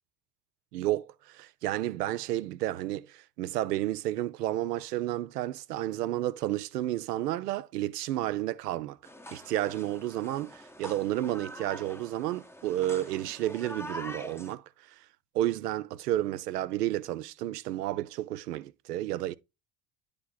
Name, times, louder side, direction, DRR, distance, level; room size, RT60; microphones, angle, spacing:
voice 1, 0.7-9.0 9.3-15.0 15.3-19.4, right 14 dB, 75° right, 0.6 m, -31 dB
sound 1, 9.0-14.5, equal, 5° left, 0.8 m, -45 dB
10.0 x 3.4 x 3.9 m
figure-of-eight pair, 50°, 48 cm